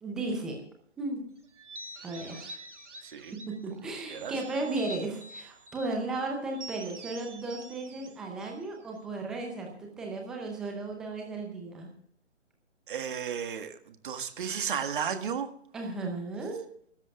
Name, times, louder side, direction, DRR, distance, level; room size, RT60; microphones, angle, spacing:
voice 1, 0.0-0.6 1.0-1.2 2.0-2.6 3.3-11.9 15.7-16.6, right 2 dB, ahead, 1 dB, 0.5 m, -35 dB
sound 1, 1.6-3.6 4.1-6.0 6.5-9.1, right 1 dB, 75° right, 2.1 m, -46 dB
voice 2, 3.0-3.3 4.1-4.3 12.9-15.5, right 7 dB, 45° right, 7 dB, 1.7 m, -33 dB
28.5 x 13.0 x 2.4 m, 0.63 s
figure-of-eight pair, 145°, 37 cm